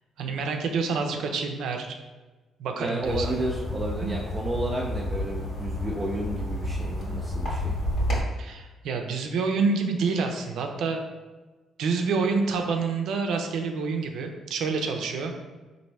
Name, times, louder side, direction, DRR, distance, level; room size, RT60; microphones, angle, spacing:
voice 1, 0.2-1.9 2.6-3.4 4.0-4.1 8.4-11.0 11.8-15.3, right 4 dB, 80° right, 4 dB, 0.5 m, -27 dB
voice 2, 2.8-7.8, right 1 dB, 25° right, -2 dB, 0.5 m, -32 dB
sound 1, 3.0-8.2, left 1 dB, 60° left, 1.5 m, -30 dB
4.1 x 2.6 x 3.2 m, 1.2 s
cardioid pair, 90°, 0 cm